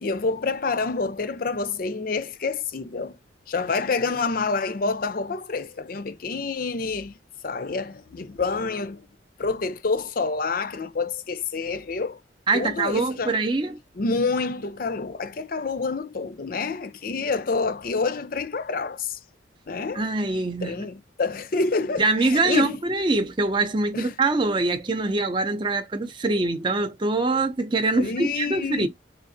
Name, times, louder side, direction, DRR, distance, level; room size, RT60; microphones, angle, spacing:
voice 1, 0.0-3.2 3.5-7.2 7.4-9.1 9.4-12.2 12.5-13.4 14.0-19.2 19.7-20.1 20.6-22.8 23.9-24.1 28.0-28.9, left 4 dB, 45° left, 0.5 m, -28 dB
voice 2, 12.5-13.8 19.9-20.8 22.0-28.9, right 3 dB, 25° right, 0.5 m, -24 dB
3.7 x 2.4 x 2.6 m
head